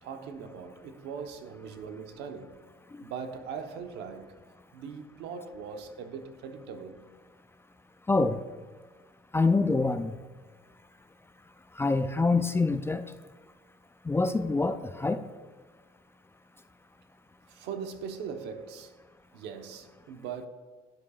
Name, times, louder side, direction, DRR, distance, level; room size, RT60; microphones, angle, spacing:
voice 1, 0.0-2.6 3.0-4.4 4.7-7.0 17.5-18.9 19.3-20.5, right 6 dB, 90° right, 1.0 m, -40 dB
voice 2, 8.1-8.4 9.3-10.1 11.8-13.0 14.1-15.2, left 3 dB, 15° left, 0.4 m, -25 dB
11.5 x 9.9 x 2.4 m
cardioid pair, 110°, 17 cm